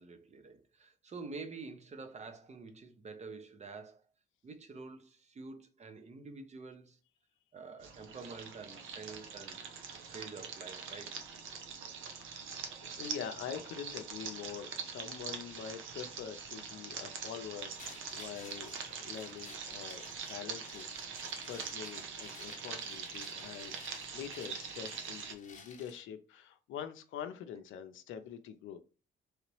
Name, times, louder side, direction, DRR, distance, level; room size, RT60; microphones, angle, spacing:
voice 1, 0.0-4.0 4.4-7.0 7.5-9.6 10.0-11.2 22.5-22.6, right 4 dB, 35° right, 0.7 m, -48 dB
sound 1, 7.8-25.3, right 6 dB, 80° right, 0.8 m, -43 dB
voice 2, 12.2-12.5 12.8-23.7 24.1-28.8, left 8 dB, 85° left, 0.6 m, -45 dB
sound 2, 17.8-26.0, left 5 dB, 40° left, 0.8 m, -55 dB
3.3 x 2.9 x 3.1 m
cardioid pair, 90°, 20 cm